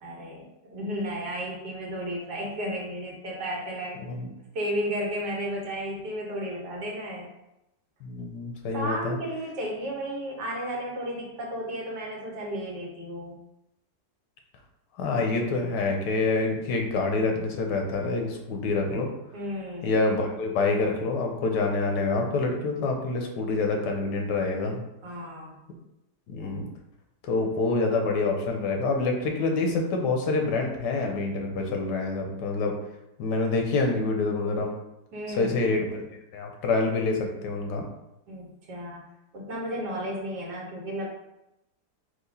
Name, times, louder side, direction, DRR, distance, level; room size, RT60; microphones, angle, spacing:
voice 1, 0.0-7.3 8.7-13.4 19.3-19.9 25.0-25.6 35.1-35.6 38.3-39.0 39.3-41.1, equal, 85° right, -2 dB, 1.7 m, -33 dB
voice 2, 8.0-9.2 15.0-19.1 19.8-24.8 26.3-26.7 27.3-32.7 33.2-34.7 35.3-36.0 36.3-37.8, left 3 dB, 85° left, 2 dB, 1.4 m, -26 dB
4.8 x 2.5 x 4.0 m, 0.89 s
omnidirectional pair, 1.8 m